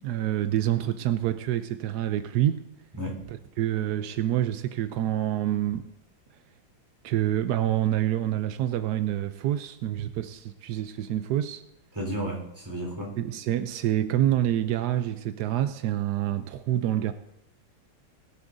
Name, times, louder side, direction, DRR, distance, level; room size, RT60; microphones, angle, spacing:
voice 1, 0.0-2.6 3.3-5.9 7.0-11.6 13.2-17.1, right 12 dB, 85° right, 0.8 m, -27 dB
voice 2, 2.9-3.3 11.9-13.2, right 1 dB, 10° right, 3.9 m, -33 dB
20.5 x 11.0 x 2.6 m
omnidirectional pair, 2.3 m